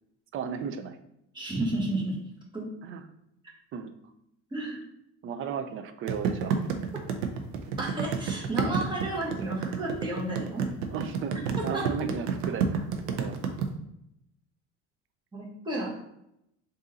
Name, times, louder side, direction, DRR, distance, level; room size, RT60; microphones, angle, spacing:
voice 1, 0.3-1.0 2.8-3.0 3.7-3.9 5.2-6.6 10.9-13.4, right 7 dB, 40° right, 8 dB, 0.5 m, -35 dB
voice 2, 1.3-2.2 2.5-2.6 4.5-4.8 7.8-10.6 11.7-12.0 15.3-15.9, right 1 dB, 15° right, -4 dB, 1.3 m, -32 dB
sound 1, 6.1-13.7, right 6 dB, 85° right, 0.6 m, -29 dB
3.7 x 2.7 x 3.9 m, 0.80 s
supercardioid pair, 115°, 34 cm